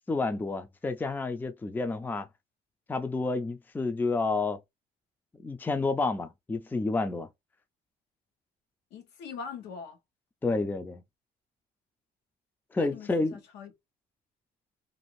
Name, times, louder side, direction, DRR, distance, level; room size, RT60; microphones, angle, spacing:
voice 1, 0.1-2.3 2.9-4.6 5.4-7.3 10.4-11.0 12.7-13.4, left 3 dB, 10° left, 0.4 m, -30 dB
voice 2, 8.9-10.0 12.8-13.7, left 6 dB, 80° left, 0.9 m, -42 dB
2.6 x 2.5 x 3.0 m
cardioid pair, 110°, 17 cm